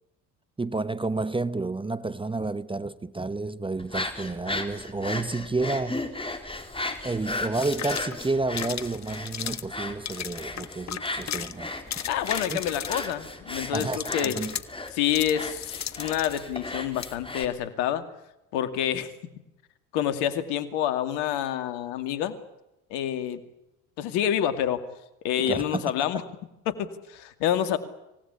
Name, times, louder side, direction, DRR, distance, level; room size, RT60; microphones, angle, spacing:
voice 1, 0.6-6.1 7.0-11.7 12.5-12.6 13.7-14.6 25.4-25.8, right 3 dB, 10° right, 1.0 m, -30 dB
sound 1, 3.8-17.4, left 2 dB, 10° left, 3.9 m, -36 dB
sound 2, 6.9-7.0 7.6-8.2 8.6-9.7 10.1-11.5 11.8-13.3 13.7-16.4 17.0-17.1, left 9 dB, 40° left, 1.5 m, -35 dB
voice 2, 12.1-14.4 14.9-18.0 18.5-19.1 19.9-22.4 22.9-23.4 24.0-24.8 25.2-26.2 26.7-27.8, left 10 dB, 65° left, 2.5 m, -27 dB
26.5 x 18.5 x 10.0 m
hypercardioid pair, 65°, 43 cm